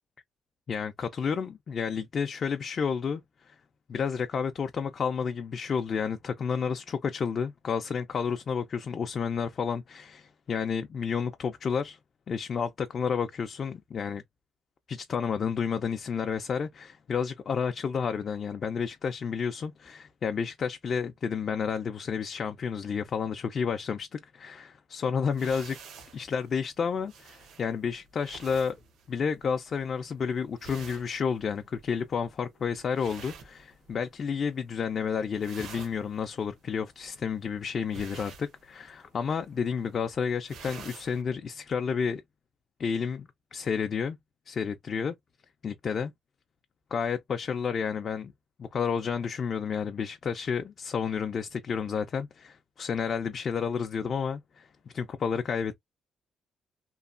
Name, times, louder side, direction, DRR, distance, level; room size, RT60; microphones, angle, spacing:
voice 1, 0.7-3.2 3.5-3.6 3.9-12.0 12.3-14.2 14.9-25.8 26.1-28.8 29.1-42.2 42.8-44.2 44.5-45.1 45.6-46.1 46.9-48.3 48.6-54.7 54.9-55.7, left 6 dB, 50° left, 0.4 m, -31 dB
sound 1, 25.3-34.3 34.6-35.0 35.2-41.2, right 5 dB, 75° right, 0.8 m, -49 dB
3.0 x 2.1 x 2.5 m
cardioid pair, 90°, 0 cm